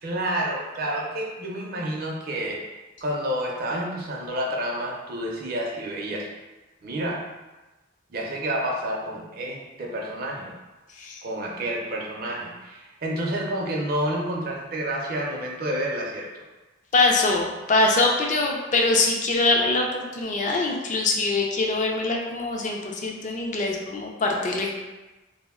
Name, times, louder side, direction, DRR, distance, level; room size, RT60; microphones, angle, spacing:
voice 1, 0.0-2.6 3.0-6.3 6.8-7.2 8.1-10.5 11.2-16.4, right 1 dB, 50° right, -1 dB, 0.5 m, -29 dB
voice 2, 16.9-24.7, left 2 dB, 40° left, 1 dB, 0.4 m, -23 dB
2.4 x 2.0 x 3.5 m, 1.1 s
head